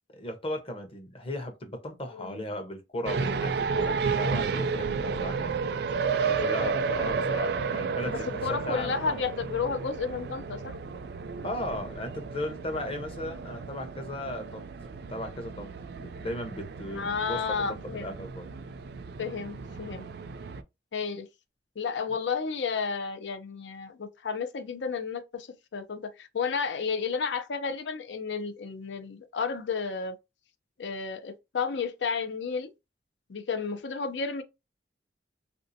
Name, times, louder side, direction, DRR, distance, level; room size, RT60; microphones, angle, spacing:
voice 1, 0.1-5.5 6.2-8.2 8.5-9.2 11.4-14.7 15.1-17.6 18.0-18.5, left 1 dB, 35° left, 0.8 m, -36 dB
voice 2, 2.1-2.4 8.1-10.8 16.9-18.1 19.2-20.1 20.9-21.3 21.8-25.5 25.7-30.2 30.8-32.7 33.3-34.4, left 5 dB, 90° left, 0.5 m, -32 dB
sound 1, 3.1-20.6, right 5 dB, 65° right, 0.3 m, -32 dB
3.3 x 2.7 x 2.7 m
head